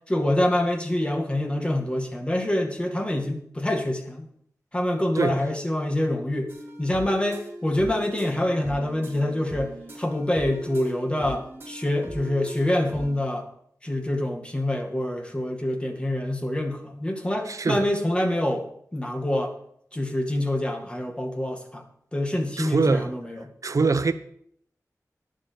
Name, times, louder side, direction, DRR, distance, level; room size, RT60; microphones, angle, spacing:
voice 1, 0.1-4.3 4.7-6.5 6.8-13.5 13.8-18.7 18.9-19.5 19.9-21.8 22.1-23.5, left 1 dB, 15° left, 2.0 m, -26 dB
sound 1, 6.5-13.2, right 1 dB, 35° right, 3.0 m, -40 dB
voice 2, 17.5-17.9 22.6-23.1 23.6-24.1, right 4 dB, 60° right, 0.8 m, -23 dB
10.5 x 7.4 x 7.1 m
wide cardioid pair, 95°, 6 cm